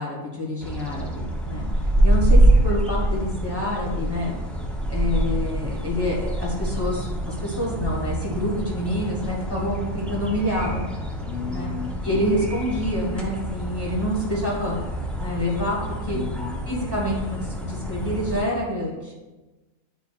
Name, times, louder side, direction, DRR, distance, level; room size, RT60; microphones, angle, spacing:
voice 1, 0.0-1.7 2.0-4.4 4.9-10.8 11.5-11.7 12.0-14.7 15.2-16.2 16.7-19.1, left 1 dB, 20° right, -5 dB, 1.5 m, -27 dB
sound 1, 0.6-18.4, right 1 dB, ahead, 0.3 m, -25 dB
voice 2, 11.3-12.5 16.1-16.6, left 6 dB, 75° left, 5 dB, 0.9 m, -34 dB
9.4 x 4.2 x 2.5 m, 1.2 s
omnidirectional pair, 1.3 m